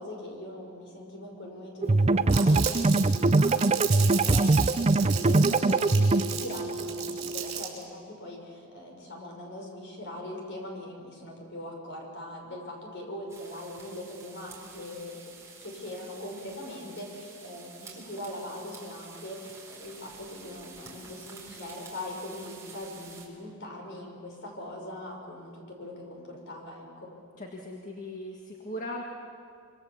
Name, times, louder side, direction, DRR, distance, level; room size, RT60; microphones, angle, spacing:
voice 1, 0.0-2.8 3.3-15.3 15.6-27.1, left 1 dB, 55° left, 1 dB, 6.1 m, -41 dB
sound 1, 1.8-7.6, right 2 dB, 30° right, 0.5 m, -23 dB
Crumpling crinkling, 2.3-7.8, right 10 dB, 55° right, 5.2 m, -35 dB
sound 2, 13.3-23.3, right 4 dB, 15° right, 4.5 m, -49 dB
voice 2, 27.4-29.0, left 1 dB, 40° left, 1 dB, 1.8 m, -38 dB
26.0 x 24.5 x 7.4 m, 2.3 s
head